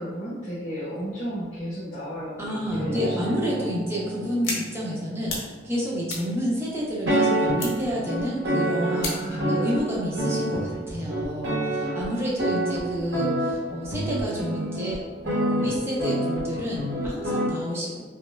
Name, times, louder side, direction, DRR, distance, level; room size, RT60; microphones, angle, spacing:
voice 1, 0.0-3.7 8.8-9.7 11.8-12.2, equal, 25° left, -16 dB, 1.5 m, -34 dB
voice 2, 2.4-15.0 15.2-18.0, equal, 15° right, -6 dB, 0.7 m, -30 dB
sound 1, 2.7-6.2 7.1-17.5, right 1 dB, 65° right, 0.9 m, -28 dB
sound 2, 4.4-4.6 5.0-5.4 5.8-7.1 7.6-7.9 8.3-8.4 9.0-9.4, left 3 dB, 85° left, 0.8 m, -32 dB
5.1 x 2.0 x 2.3 m, 1.3 s
head